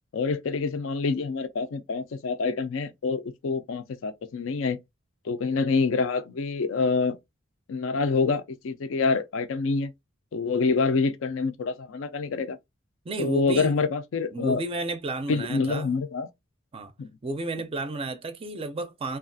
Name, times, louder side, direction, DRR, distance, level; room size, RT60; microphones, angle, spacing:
voice 1, 0.1-4.8 5.2-7.2 7.7-9.9 10.3-12.6 13.2-14.6 15.3-16.3 17.0-17.1, left 4 dB, 65° left, 0.4 m, -26 dB
voice 2, 13.1-13.7 14.3-16.0 16.7-16.9 17.2-19.2, right 2 dB, 25° right, 0.4 m, -32 dB
2.7 x 2.4 x 2.6 m
head